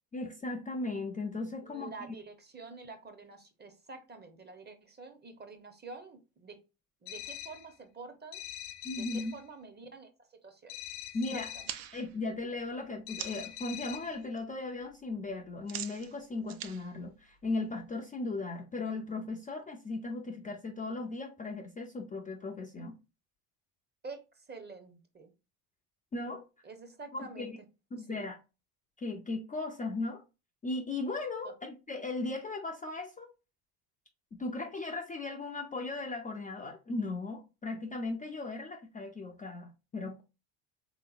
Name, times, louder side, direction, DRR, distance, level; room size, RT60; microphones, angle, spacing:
voice 1, 0.1-2.1 8.8-9.3 11.1-11.5 11.9-22.9 26.1-26.4 27.1-27.6 27.9-28.4 29.0-30.2 30.6-33.3 34.4-40.2, left 3 dB, 20° left, 0.4 m, -37 dB
voice 2, 1.6-6.6 7.0-8.5 8.9-10.1 10.4-10.7 11.3-11.7 24.0-25.3 26.6-27.5 28.1-28.2 31.4-31.5, right 4 dB, 20° right, 0.7 m, -48 dB
sound 1, 7.1-7.7 8.3-9.4 10.7-11.8 13.1-14.2, left 13 dB, 75° left, 0.7 m, -43 dB
sound 2, 11.5-13.6 14.0-14.4 14.7-17.9, right 11 dB, 50° right, 0.5 m, -45 dB
3.2 x 2.9 x 2.4 m
supercardioid pair, 80°, 47 cm